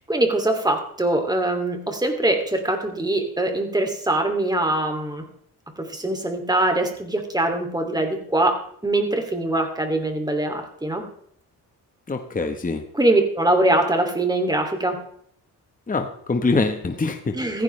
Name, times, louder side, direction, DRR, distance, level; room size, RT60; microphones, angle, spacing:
voice 1, 0.1-5.2 5.8-8.6 8.8-11.0 12.9-15.0 17.3-17.6, right 1 dB, 10° right, 4 dB, 2.7 m, -22 dB
voice 2, 12.1-12.8 15.9-17.6, left 3 dB, 20° left, 6 dB, 1.2 m, -24 dB
16.0 x 15.0 x 3.3 m, 0.65 s
cardioid pair, 110°, 39 cm